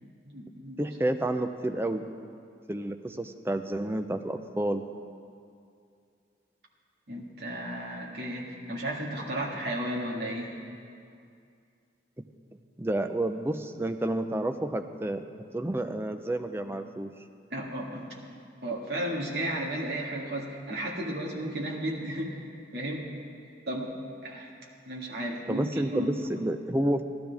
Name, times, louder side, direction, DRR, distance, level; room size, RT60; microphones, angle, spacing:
voice 1, 0.0-0.8 7.1-10.6 17.5-18.1 18.6-22.4 22.7-23.1 23.7-23.9 24.2-24.5 24.9-26.1, right 1 dB, 60° right, -3 dB, 1.9 m, -34 dB
voice 2, 0.8-2.0 2.7-4.8 12.2-12.3 12.8-15.2 15.5-17.1 25.5-27.0, right 1 dB, 10° right, 7 dB, 0.4 m, -30 dB
16.5 x 12.0 x 3.5 m, 2.4 s
head